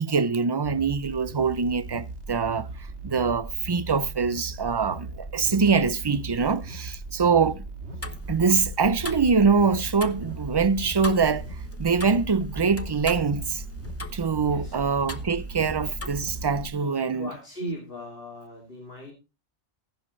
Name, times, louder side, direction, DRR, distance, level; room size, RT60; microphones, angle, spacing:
voice 1, 0.0-2.7 3.0-7.6 8.3-11.4 11.8-13.6 14.1-17.3, right 5 dB, 30° right, 0.5 m, -24 dB
sound 1, 0.6-16.6, right 3 dB, 75° right, 2.2 m, -38 dB
Tick-tock, 8.0-16.7, left 1 dB, 15° left, 0.7 m, -39 dB
voice 2, 16.8-19.1, equal, 55° left, 3.0 m, -38 dB
15.0 x 11.0 x 3.2 m
omnidirectional pair, 1.2 m